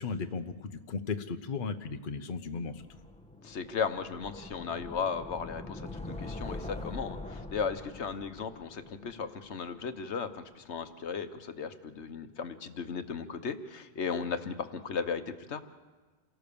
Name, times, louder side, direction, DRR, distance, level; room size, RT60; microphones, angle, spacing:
voice 1, 0.0-2.8, left 4 dB, 50° left, 7 dB, 1.0 m, -36 dB
sound 1, 2.8-9.8, left 2 dB, 5° left, 1.3 m, -43 dB
voice 2, 3.4-15.6, left 6 dB, 75° left, 10 dB, 1.3 m, -36 dB
28.0 x 18.0 x 6.9 m, 1.3 s
omnidirectional pair, 1.2 m